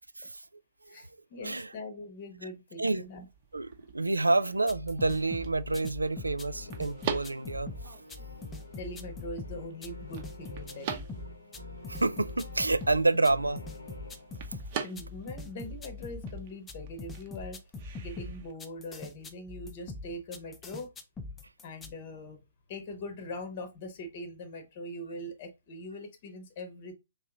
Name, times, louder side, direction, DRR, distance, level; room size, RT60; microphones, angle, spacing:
voice 1, 0.9-3.2 8.8-11.1 14.8-17.6 18.0-20.9 21.6-22.4 22.7-26.9, left 1 dB, 40° left, 0.9 m, -42 dB
sound 1, 3.0-18.5, right 7 dB, 35° right, 0.8 m, -44 dB
voice 2, 3.5-8.0 11.9-13.6 14.5-14.6, right 2 dB, 85° right, 0.3 m, -28 dB
sound 2, 4.4-21.9, left 3 dB, 10° left, 0.5 m, -42 dB
sound 3, 5.0-14.8, left 1 dB, 85° left, 0.9 m, -50 dB
3.1 x 2.9 x 3.6 m
figure-of-eight pair, 130°, 0 cm